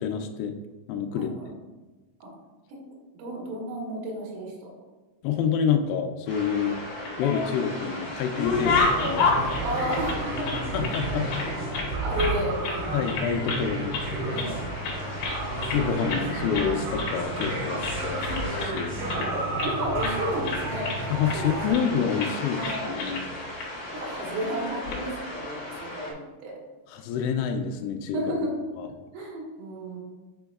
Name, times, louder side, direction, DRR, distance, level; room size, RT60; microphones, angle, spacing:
voice 1, 0.0-0.5 0.9-1.3 5.2-6.8 7.2-9.6 10.7-11.3 11.7-11.9 12.9-14.4 15.7-19.0 21.1-23.3 26.9-28.2 28.8-28.9, left 7 dB, 90° left, 5 dB, 3.3 m, -28 dB
voice 2, 1.2-1.5 2.2-2.3 2.7-2.8 3.2-4.7 8.6-8.9 9.6-10.6 12.0-12.9 14.3-14.6 17.6-17.9 19.0-20.9 21.3-21.8 22.6-23.0 23.9-26.5 28.1-28.6 29.1-30.0, right 1 dB, 80° right, -2 dB, 3.9 m, -32 dB
sound 1, 6.3-26.1, left 1 dB, 45° left, 2.2 m, -38 dB
sound 2, 6.9-7.7 8.1-11.0 11.3-12.4 12.6-12.8 13.1-13.7 13.9-14.5 14.8-15.8 16.1-16.3 16.5-16.7 17.0-17.6 17.8-19.7 20.0-20.2 20.4-21.4 21.7-21.9 22.2-22.3 22.6-23.2 23.6-23.7 24.6-25.0, left 4 dB, 70° left, 2.6 m, -29 dB
sound 3, 8.4-21.7, right 2 dB, 50° right, 2.4 m, -32 dB
8.7 x 5.2 x 2.3 m, 1.2 s
omnidirectional pair, 6.0 m